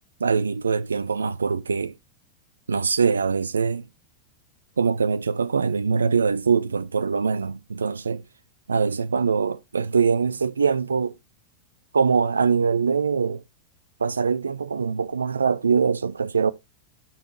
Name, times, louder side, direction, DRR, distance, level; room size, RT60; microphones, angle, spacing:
voice 1, 0.2-1.9 2.7-3.9 4.8-8.2 8.7-11.1 11.9-13.4 14.0-16.5, right 5 dB, 75° right, 0.3 m, -23 dB
12.0 x 5.6 x 2.2 m
figure-of-eight pair, 90°, 0 cm